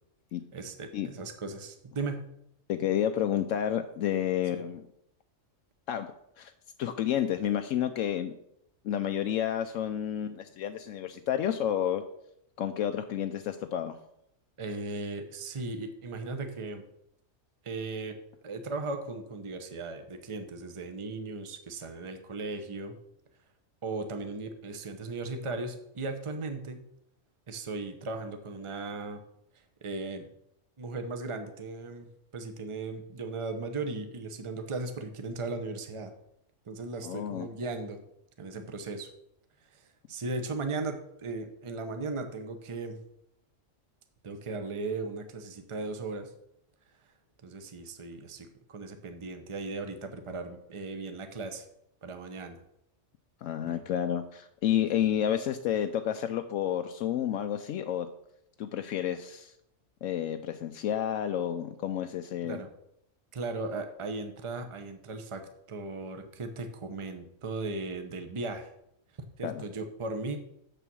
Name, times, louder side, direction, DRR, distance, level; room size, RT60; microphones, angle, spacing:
voice 1, 0.5-2.3 4.5-4.6 14.6-16.8 17.6-18.1 18.4-23.0 23.8-26.9 27.5-29.2 29.8-30.3 30.8-32.1 32.3-36.1 36.7-38.0 38.4-39.1 39.7-43.0 44.2-46.3 47.4-51.7 52.0-52.6 53.6-53.8 62.4-62.7 63.3-65.4 65.7-68.7 69.4-70.4, right 3 dB, 25° right, 6 dB, 0.8 m, -37 dB
voice 2, 2.7-4.9 5.9-6.5 6.8-8.3 8.8-12.0 12.6-14.0 37.0-37.5 53.4-58.1 58.6-59.5 60.0-62.6 69.4-69.6, left 10 dB, 80° left, 7 dB, 0.9 m, -30 dB
7.1 x 6.8 x 6.1 m, 0.76 s
omnidirectional pair, 1.3 m